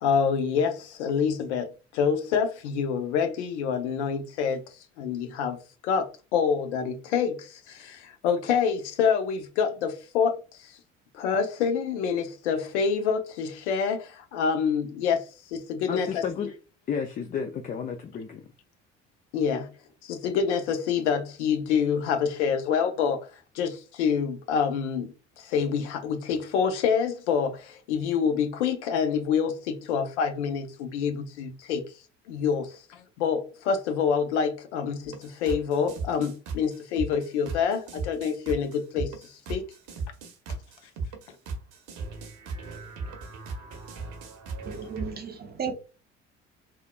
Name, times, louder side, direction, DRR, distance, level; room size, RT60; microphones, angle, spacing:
voice 1, 0.0-4.6 5.0-5.6 5.8-10.7 11.1-15.2 15.5-16.2 19.3-19.7 20.0-23.3 23.5-25.1 25.4-31.8 32.3-32.7 33.2-39.6, left 6 dB, 70° left, 0.7 m, -27 dB
voice 2, 15.9-16.5 16.9-18.5, left 6 dB, 25° left, 0.4 m, -32 dB
sound 1, 35.1-45.1, right 3 dB, 55° right, 0.8 m, -36 dB
voice 3, 44.7-45.7, right 6 dB, 25° right, 0.6 m, -34 dB
3.5 x 2.2 x 2.2 m
figure-of-eight pair, 55°, 36 cm